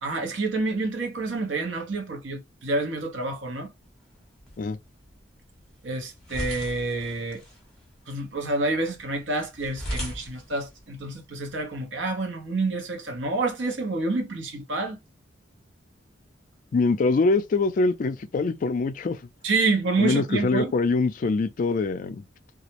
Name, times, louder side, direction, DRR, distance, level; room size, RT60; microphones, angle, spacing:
voice 1, 0.0-3.7 5.8-7.4 8.1-15.0 19.4-20.7, right 3 dB, 75° right, 0.8 m, -28 dB
sound 1, 3.8-11.9, equal, 5° left, 1.0 m, -40 dB
voice 2, 16.7-19.2 20.0-22.2, left 3 dB, 45° left, 0.3 m, -24 dB
2.3 x 2.0 x 2.8 m
head